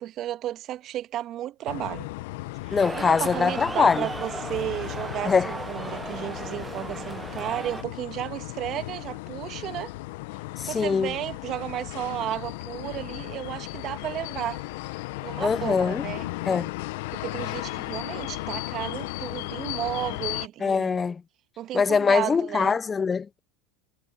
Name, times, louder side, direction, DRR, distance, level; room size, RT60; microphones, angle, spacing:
voice 1, 0.0-2.1 2.6-9.9 10.7-14.6 15.2-16.3 17.1-21.0 21.6-22.8, right 13 dB, 45° right, 2.0 m, -33 dB
sound 1, 1.7-20.5, left 21 dB, 70° left, 0.9 m, -36 dB
voice 2, 2.7-4.1 5.2-5.5 10.6-11.1 15.4-16.0 16.4-16.7 20.6-21.2 21.7-23.4, left 5 dB, 25° left, 0.9 m, -23 dB
sound 2, 2.8-7.8, right 3 dB, 15° right, 0.9 m, -36 dB
hypercardioid pair, 90°, 0 cm